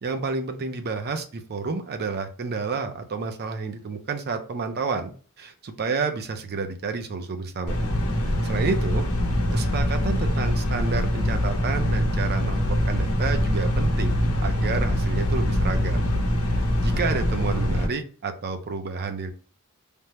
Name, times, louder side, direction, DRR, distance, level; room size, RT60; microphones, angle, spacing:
voice 1, 0.0-5.1 5.4-7.8 8.4-9.1 9.5-16.1 16.5-19.3, right 4 dB, 45° right, 7 dB, 0.5 m, -30 dB
sound 1, 7.7-17.9, equal, 80° left, 0.8 m, -23 dB
3.4 x 2.1 x 2.8 m, 0.39 s
head